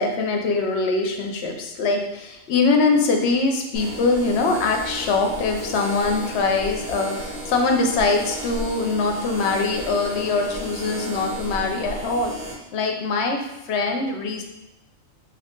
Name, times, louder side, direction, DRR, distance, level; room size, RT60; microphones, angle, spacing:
voice 1, 0.0-12.3 12.7-14.4, left 3 dB, 65° left, 3 dB, 0.8 m, -23 dB
sound 1, 3.7-12.5, equal, 75° right, 1.7 m, -34 dB
3.7 x 3.1 x 3.6 m, 0.91 s
omnidirectional pair, 1.3 m